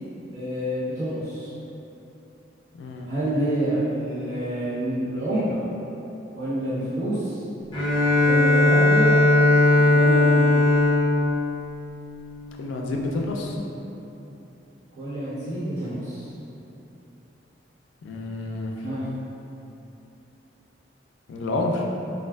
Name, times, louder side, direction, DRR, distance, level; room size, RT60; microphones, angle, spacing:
voice 1, 0.3-1.5 3.1-5.6 6.3-7.4 8.2-9.1 9.9-10.5 15.0-16.3 18.8-19.0, right 1 dB, 65° right, -16 dB, 0.7 m, -28 dB
voice 2, 2.8-3.1 12.6-13.6 18.0-18.7 21.3-21.8, left 2 dB, 80° left, 0 dB, 0.3 m, -28 dB
Bowed string instrument, 7.7-12.5, left 2 dB, 25° left, 0.5 m, -19 dB
3.2 x 2.3 x 2.2 m, 2.9 s
head